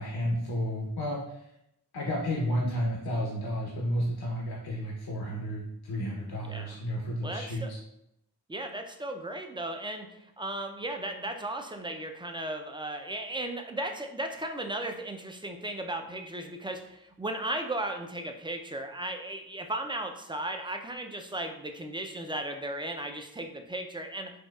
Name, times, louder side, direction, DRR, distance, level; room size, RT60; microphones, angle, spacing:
voice 1, 0.0-1.5 1.9-7.8, equal, 70° left, -3 dB, 0.7 m, -32 dB
voice 2, 6.4-6.8 7.2-7.7 8.5-24.3, right 1 dB, 15° right, 4 dB, 0.3 m, -36 dB
4.3 x 2.3 x 2.3 m, 0.80 s
cardioid pair, 50°, 39 cm